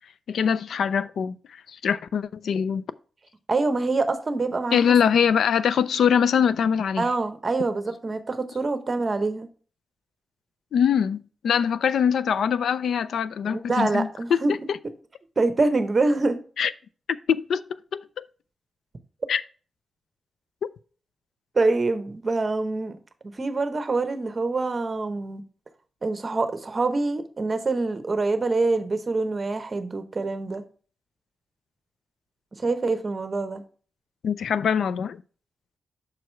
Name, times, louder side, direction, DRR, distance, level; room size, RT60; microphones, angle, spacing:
voice 1, 0.3-2.8 4.7-7.1 10.7-14.4 14.7-14.8 16.6-16.7 17.3-17.6 17.9-18.2 19.3-19.4 20.6-20.7 34.2-35.2, left 7 dB, 85° left, 0.3 m, -23 dB
voice 2, 3.5-4.9 7.0-9.5 13.4-14.7 15.4-16.4 21.5-23.0 23.4-25.4 26.0-30.6 32.5-33.6, right 3 dB, 30° right, 0.8 m, -25 dB
6.2 x 4.7 x 4.3 m
wide cardioid pair, 175°, 0 cm